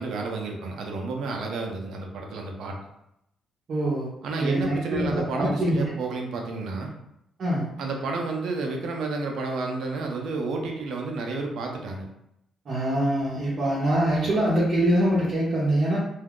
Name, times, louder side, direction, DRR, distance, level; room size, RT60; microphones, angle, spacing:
voice 1, 0.0-2.8 4.2-6.9 7.8-12.0, right 3 dB, 75° right, 1 dB, 0.7 m, -31 dB
voice 2, 3.7-4.1 4.4-5.8 7.4-7.7 12.6-16.0, right 1 dB, 50° right, -8 dB, 1.0 m, -24 dB
2.7 x 2.3 x 3.6 m, 0.80 s
cardioid pair, 90°, 0 cm